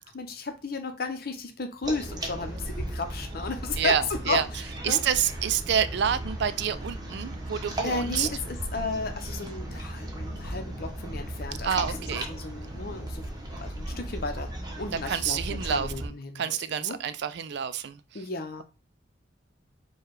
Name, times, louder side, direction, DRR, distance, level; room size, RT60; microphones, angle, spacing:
voice 1, 0.0-5.0 7.8-12.0 12.3-13.2 13.6-14.5 14.8-17.0 18.1-18.6, left 4 dB, 55° left, 0.8 m, -34 dB
sound 1, 1.8-16.1, right 1 dB, 20° right, 1.0 m, -36 dB
voice 2, 3.8-4.4 4.8-8.3 11.6-12.3 15.1-16.1 16.4-18.0, right 8 dB, 65° right, 0.4 m, -28 dB
4.7 x 2.3 x 4.6 m
head